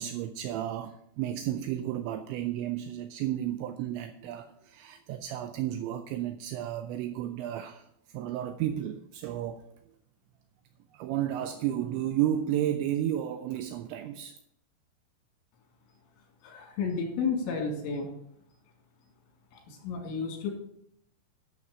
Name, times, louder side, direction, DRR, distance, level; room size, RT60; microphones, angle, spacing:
voice 1, 0.0-9.6 10.9-14.4, right 11 dB, 80° right, 8 dB, 2.8 m, -32 dB
voice 2, 16.4-18.1 19.5-20.5, left 5 dB, 80° left, 1 dB, 4.9 m, -32 dB
12.5 x 6.8 x 4.9 m, 0.74 s
omnidirectional pair, 5.5 m